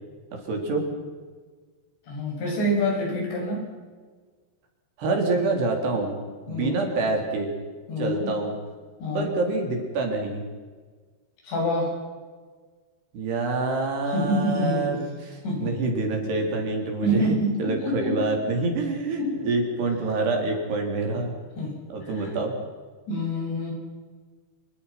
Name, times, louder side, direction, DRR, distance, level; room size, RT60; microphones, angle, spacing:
voice 1, 0.3-0.9 5.0-6.1 6.5-7.5 8.0-8.5 9.1-10.4 13.1-17.3 17.6-21.3 21.9-22.5, right 3 dB, 65° right, 2 dB, 5.9 m, -26 dB
voice 2, 2.1-3.6 6.5-6.8 7.9-8.3 9.0-9.4 11.4-11.9 14.1-14.8 15.4-15.7 17.0-18.3 19.2-19.3 21.6-21.7 22.0-22.3 23.1-23.7, left 1 dB, 70° left, -1 dB, 9.8 m, -26 dB
27.5 x 24.5 x 6.0 m, 1.5 s
omnidirectional pair, 5.2 m